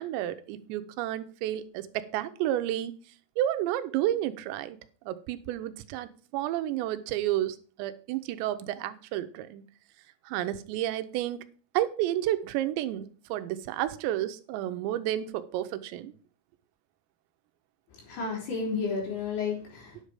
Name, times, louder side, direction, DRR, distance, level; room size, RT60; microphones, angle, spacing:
voice 1, 0.0-2.9 3.4-4.8 5.1-9.6 10.3-11.5 11.7-16.1, right 13 dB, 85° right, 11 dB, 2.9 m, -31 dB
voice 2, 17.9-20.0, left 5 dB, 65° left, -1 dB, 5.4 m, -32 dB
10.5 x 6.7 x 4.9 m, 0.41 s
omnidirectional pair, 5.1 m